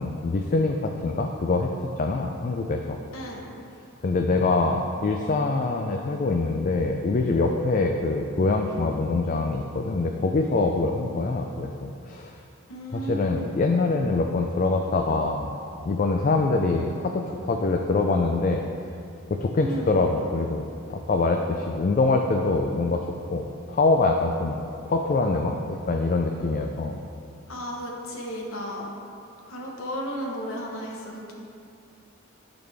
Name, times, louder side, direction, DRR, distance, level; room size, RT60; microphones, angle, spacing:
voice 1, 0.0-1.7 2.0-3.0 4.0-12.3 12.9-15.5 15.8-18.6 19.3-27.0, left 3 dB, 40° left, 3 dB, 0.3 m, -24 dB
voice 2, 3.1-3.5 12.7-13.5 19.6-19.9 27.5-28.9 29.5-31.3, equal, 75° left, -1 dB, 1.1 m, -34 dB
12.5 x 4.1 x 3.4 m, 2.6 s
head